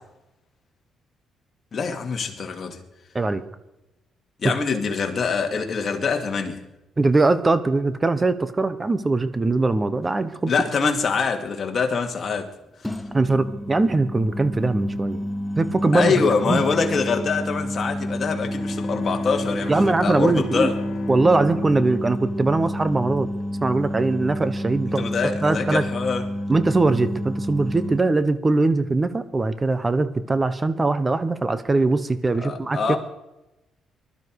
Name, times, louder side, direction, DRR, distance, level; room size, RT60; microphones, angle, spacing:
voice 1, 1.7-2.8 4.4-6.6 10.5-12.5 15.9-20.7 24.9-26.2 32.4-33.0, left 5 dB, 45° left, 2.5 m, -24 dB
voice 2, 7.0-10.5 13.1-15.2 15.6-16.6 19.7-20.7 21.1-23.3 23.6-25.8 26.5-33.0, right 3 dB, 25° right, 1.2 m, -21 dB
sound 1, 10.0-10.2 12.8-28.0, equal, 5° left, 1.0 m, -30 dB
Bowed string instrument, 18.2-23.3, left 2 dB, 60° left, 3.8 m, -35 dB
20.0 x 12.0 x 4.8 m
cardioid pair, 90°, 0 cm